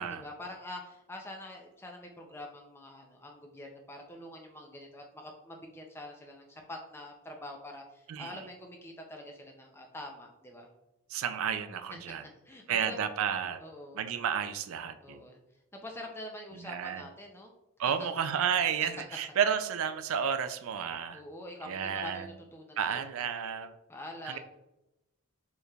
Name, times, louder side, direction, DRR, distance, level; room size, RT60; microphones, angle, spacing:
voice 1, 0.2-10.7 12.4-13.0 13.6-14.0 15.0-15.4 15.7-17.5 18.0-18.1 21.1-23.1 23.9-24.4, left 1 dB, 10° left, 2 dB, 0.3 m, -45 dB
voice 2, 8.1-8.4 11.1-12.2 12.7-13.6 13.9-15.2 16.6-17.1 17.8-21.2 21.6-22.3 22.8-23.7 24.2-24.4, right 7 dB, 75° right, 11 dB, 0.4 m, -31 dB
4.5 x 3.1 x 2.3 m, 0.93 s
head